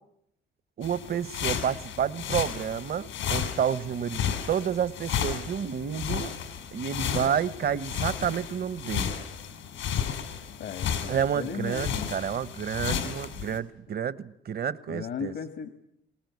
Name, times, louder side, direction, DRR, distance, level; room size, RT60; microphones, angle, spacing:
sound 1, 0.8-13.6, left 8 dB, 85° left, 5.0 m, -33 dB
voice 1, 0.8-6.3 6.7-9.1 11.1-15.3, right 8 dB, 50° right, 16 dB, 1.1 m, -30 dB
voice 2, 10.6-12.1 14.9-15.7, left 6 dB, 70° left, 9 dB, 1.8 m, -36 dB
24.0 x 19.5 x 9.6 m, 0.76 s
cardioid pair, 90°, 20 cm